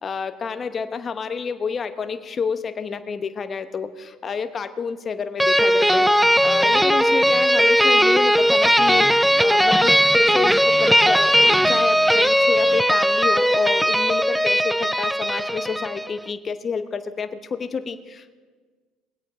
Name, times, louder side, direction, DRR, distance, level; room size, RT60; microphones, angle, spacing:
voice 1, 0.0-18.4, left 5 dB, 35° left, 10 dB, 1.0 m, -29 dB
sound 1, 5.4-16.1, equal, 5° right, 0.5 m, -18 dB
21.5 x 8.3 x 4.9 m, 1.4 s
supercardioid pair, 85°, 0 cm